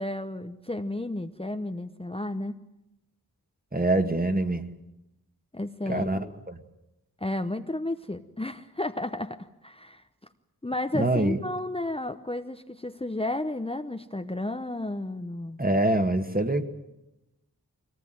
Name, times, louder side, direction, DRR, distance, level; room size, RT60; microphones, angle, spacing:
voice 1, 0.0-2.6 5.5-6.3 7.2-10.0 10.6-15.6, left 1 dB, 15° left, 7 dB, 0.9 m, -32 dB
voice 2, 3.7-4.7 5.9-6.2 6.5-6.6 10.9-11.4 15.6-16.7, right 1 dB, 25° right, 7 dB, 1.8 m, -24 dB
23.5 x 18.5 x 9.2 m, 0.92 s
wide cardioid pair, 50°, 37 cm